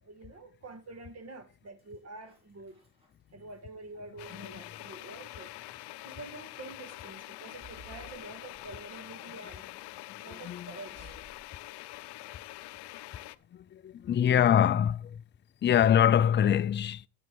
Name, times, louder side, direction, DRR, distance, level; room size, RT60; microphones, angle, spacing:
voice 1, 0.0-2.8 3.3-5.7 6.0-9.7 10.2-11.2, right 3 dB, 35° right, 2.0 m, -47 dB
sound 1, 1.8-3.7 4.2-4.9 5.6-5.7 6.2-6.6 7.1-9.0 9.5-10.0 10.9-12.0 12.5-13.1 14.0-14.9, equal, 15° right, 3.8 m, -57 dB
sound 2, 4.2-13.4, left 18 dB, 70° left, 0.7 m, -45 dB
voice 2, 13.5-15.2 15.6-17.0, left 9 dB, 25° left, 0.4 m, -24 dB
15.0 x 6.4 x 4.6 m
cardioid pair, 120°, 42 cm